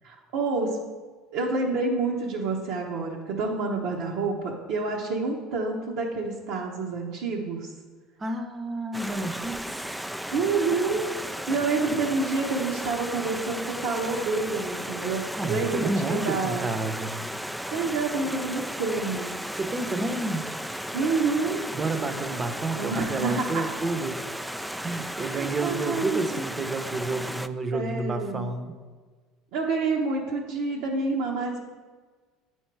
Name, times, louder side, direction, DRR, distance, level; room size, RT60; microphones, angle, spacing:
voice 1, 0.0-0.8 1.3-7.7 10.3-11.0 11.5-16.7 17.7-19.3 20.9-21.6 22.7-23.7 25.2-26.5 27.1-27.2 27.7-28.5 29.5-31.6, right 3 dB, 70° right, -3 dB, 1.0 m, -28 dB
voice 2, 8.2-10.0 15.4-17.2 19.6-20.5 21.7-24.2 24.8-28.7, right 2 dB, 30° right, 8 dB, 0.8 m, -30 dB
Stream, 8.9-27.5, equal, ahead, 0.3 m, -35 dB
8.2 x 4.5 x 4.7 m, 1.4 s
hypercardioid pair, 85°, 0 cm